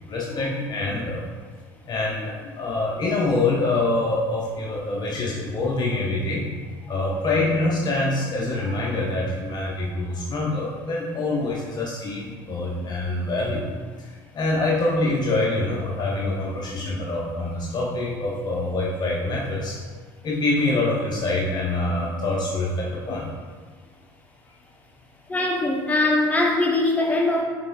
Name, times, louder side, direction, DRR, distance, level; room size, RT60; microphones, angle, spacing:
voice 1, 0.1-1.2 1.8-6.5 6.8-19.8 20.2-23.3 25.3-25.4, left 2 dB, 40° left, -3 dB, 0.7 m, -25 dB
voice 2, 25.3-27.4, left 2 dB, 15° left, -1 dB, 1.0 m, -21 dB
6.4 x 3.2 x 2.5 m, 1.5 s
hypercardioid pair, 70°, 11 cm